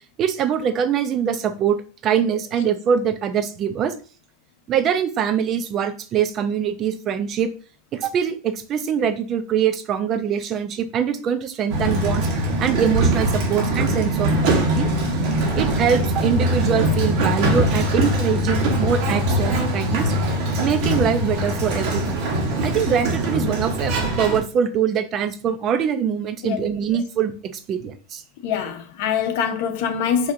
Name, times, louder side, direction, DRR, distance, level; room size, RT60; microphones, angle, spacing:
voice 1, 0.2-1.8 2.0-3.9 4.7-7.5 7.9-12.3 12.6-14.9 15.5-20.1 20.6-22.2 22.6-28.2, right 8 dB, 30° right, 0.5 m, -23 dB
Sliding door, 11.7-24.4, right 1 dB, 55° right, 1.3 m, -22 dB
voice 2, 28.4-30.3, left 7 dB, 60° left, 0.8 m, -24 dB
4.9 x 2.8 x 2.6 m
supercardioid pair, 145°, 0 cm